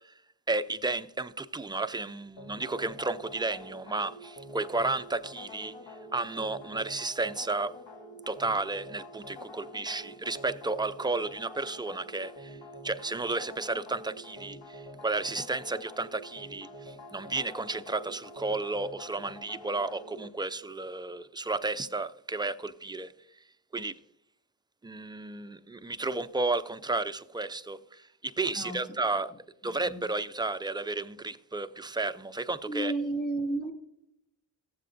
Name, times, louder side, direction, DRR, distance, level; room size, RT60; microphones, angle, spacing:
voice 1, 0.5-5.7 6.1-7.7 8.3-12.6 12.8-23.1 23.7-23.9 24.8-29.3 29.6-32.9, right 3 dB, 10° right, 0.3 m, -32 dB
sound 1, 2.4-20.3, equal, 70° left, 1.1 m, -47 dB
voice 2, 28.5-29.4 29.6-30.0 32.6-33.7, right 2 dB, 20° left, 2.1 m, -33 dB
14.5 x 7.6 x 2.5 m
cardioid pair, 65°, 45 cm